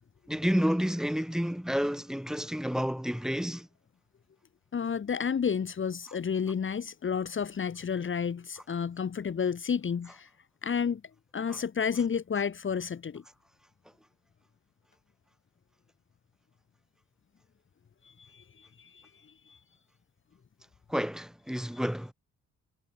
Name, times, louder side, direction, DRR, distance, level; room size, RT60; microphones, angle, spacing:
voice 1, 0.3-3.7 11.5-11.6 20.9-22.1, equal, ahead, 7.4 m, -30 dB
voice 2, 4.7-10.3 10.6-11.0 11.3-13.2 18.0-19.6, left 6 dB, 40° left, 2.4 m, -31 dB
cardioid pair, 90°, 30 cm